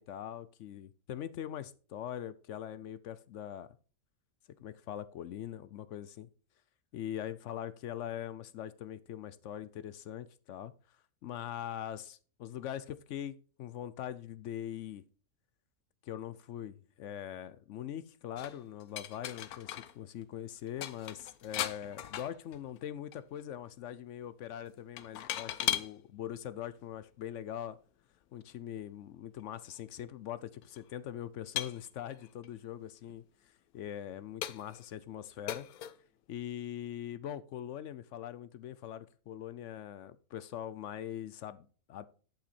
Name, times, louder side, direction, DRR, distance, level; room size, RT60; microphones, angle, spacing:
voice 1, 0.0-3.7 4.6-6.3 6.9-10.7 11.2-15.0 16.0-27.8 28.3-33.2 33.7-35.7 36.3-42.1, left 10 dB, 65° left, 0.8 m, -42 dB
sound 1, 18.4-20.0 20.2-20.3 20.6-22.8 23.1-23.4 25.0-25.9 26.8-26.9 29.4-29.5 29.7-29.8 30.6-30.8 31.6-32.5 33.1-33.2 33.8-33.9 34.4-34.9 35.5-36.0, left 12 dB, 85° left, 1.2 m, -38 dB
10.5 x 5.7 x 4.2 m
omnidirectional pair, 1.6 m